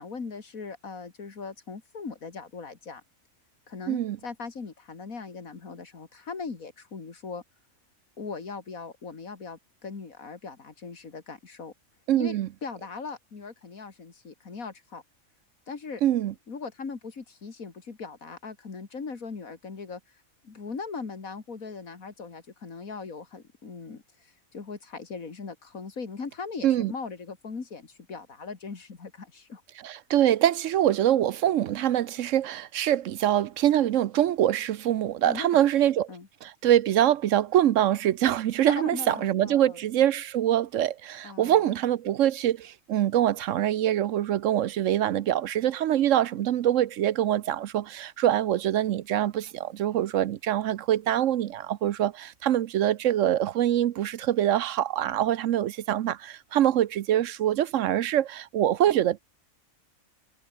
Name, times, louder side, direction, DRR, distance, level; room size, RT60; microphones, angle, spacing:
voice 1, 0.0-3.0 3.7-7.4 8.2-11.7 12.1-15.0 15.7-16.0 16.5-29.6 35.2-35.7 36.1-36.3 38.7-39.8 41.2-41.8, left 4 dB, 85° left, 2.8 m, -39 dB
voice 2, 12.1-12.5 16.0-16.3 26.6-26.9 29.8-36.1 36.4-59.2, right 11 dB, 70° right, 1.0 m, -24 dB
omnidirectional pair, 1.4 m